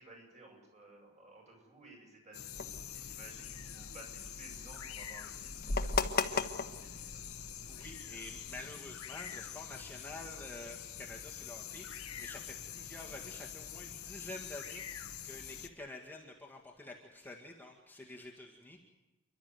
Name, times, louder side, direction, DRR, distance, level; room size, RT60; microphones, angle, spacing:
voice 1, 0.0-2.7 2.9-7.2, right 2 dB, 35° right, 0 dB, 8.0 m, -56 dB
sound 1, 2.3-15.7, left 9 dB, 85° left, 1.3 m, -46 dB
sound 2, 2.6-8.6, left 4 dB, 50° left, 1.4 m, -38 dB
voice 2, 7.6-18.9, left 2 dB, 10° left, -1 dB, 1.9 m, -49 dB
29.5 x 12.5 x 9.4 m, 1.0 s
head